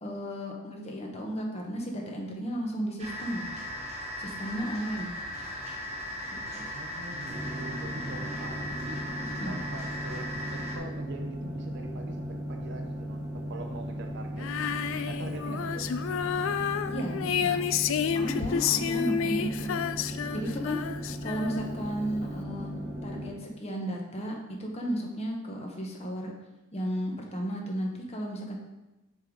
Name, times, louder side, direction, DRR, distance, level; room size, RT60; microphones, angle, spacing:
voice 1, 0.0-3.5 4.2-5.1 6.3-6.7 9.4-9.6 16.9-17.6 18.1-19.8 20.3-20.8 21.2-22.7 23.0-26.3 26.7-28.6, equal, 30° left, 0 dB, 1.1 m, -34 dB
sound 1, 3.0-10.8, left 1 dB, 30° right, 1.3 m, -38 dB
voice 2, 6.7-9.0 9.5-14.5 15.1-15.9, right 2 dB, 55° right, 4 dB, 0.7 m, -42 dB
sound 2, 7.3-23.3, equal, 5° right, 1.5 m, -37 dB
Female singing, 14.4-21.9, left 8 dB, 65° left, 0.3 m, -30 dB
6.6 x 4.0 x 4.7 m, 1.0 s
head